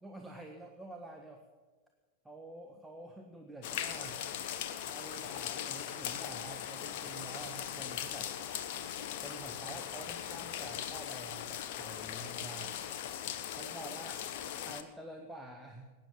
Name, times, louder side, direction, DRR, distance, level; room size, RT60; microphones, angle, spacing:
voice 1, 0.0-1.4 2.2-4.2 4.8-8.3 9.2-12.8 13.6-14.3 14.6-15.9, right 2 dB, 5° right, 2 dB, 1.5 m, -48 dB
sound 1, 3.6-14.8, left 10 dB, 50° left, 1.2 m, -39 dB
19.0 x 10.5 x 7.2 m, 1.4 s
figure-of-eight pair, 90°, 0 cm